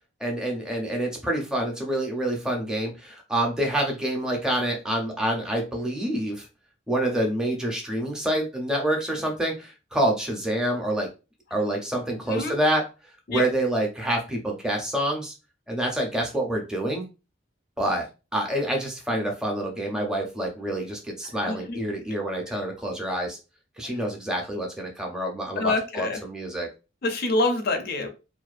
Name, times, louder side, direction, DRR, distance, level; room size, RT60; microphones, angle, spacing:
voice 1, 0.2-6.5 6.9-11.1 11.5-12.8 13.3-15.3 15.7-17.1 17.8-18.0 18.3-23.4 23.8-26.7, right 1 dB, 5° right, 0 dB, 0.5 m, -27 dB
voice 2, 21.5-21.8 25.6-26.2 27.0-28.1, left 2 dB, 50° left, 6 dB, 0.4 m, -26 dB
2.5 x 2.1 x 2.4 m, 0.30 s
head